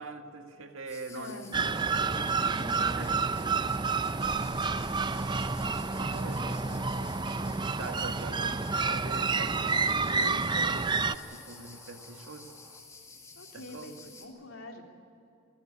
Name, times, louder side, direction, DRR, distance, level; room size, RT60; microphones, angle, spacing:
voice 1, 0.0-1.6 3.0-3.1 4.5-5.3 6.0-6.4 7.7-12.5 13.5-13.9, right 3 dB, 85° right, 5 dB, 2.0 m, -43 dB
sound 1, 0.9-14.3, left 4 dB, 15° left, 2.5 m, -50 dB
voice 2, 1.1-1.8 2.1-2.2 2.6-3.1 6.1-7.5 13.3-14.8, left 1 dB, 90° left, 2 dB, 3.3 m, -46 dB
sound 2, 1.5-11.1, right 4 dB, 20° right, 0.5 m, -29 dB
sound 3, 4.2-12.8, equal, 5° right, 2.2 m, -50 dB
25.5 x 14.5 x 10.0 m, 2.8 s
head